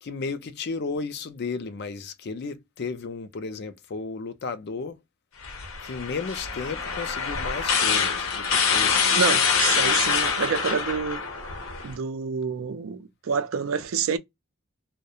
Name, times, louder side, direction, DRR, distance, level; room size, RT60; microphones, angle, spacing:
voice 1, 0.0-5.0 5.8-9.2, left 4 dB, 55° left, 0.4 m, -34 dB
sound 1, 5.4-11.9, left 6 dB, 85° left, 0.7 m, -25 dB
voice 2, 9.1-11.2 11.8-14.2, right 6 dB, 85° right, 0.4 m, -28 dB
2.4 x 2.1 x 2.7 m
head